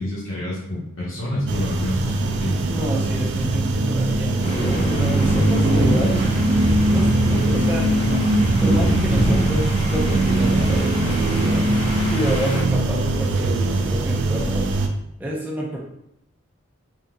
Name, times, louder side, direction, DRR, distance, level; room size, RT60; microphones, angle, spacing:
voice 1, 0.0-2.6, left 1 dB, 80° left, -8 dB, 0.9 m, -28 dB
sound 1, 1.5-14.9, right 2 dB, 60° right, 0.4 m, -21 dB
voice 2, 2.7-6.2 6.6-7.9 8.6-11.7 12.1-14.7 15.2-15.8, equal, 10° right, -3 dB, 0.5 m, -29 dB
sound 2, 4.4-12.6, left 1 dB, 30° left, 0.7 m, -28 dB
3.8 x 2.7 x 2.2 m, 0.79 s
head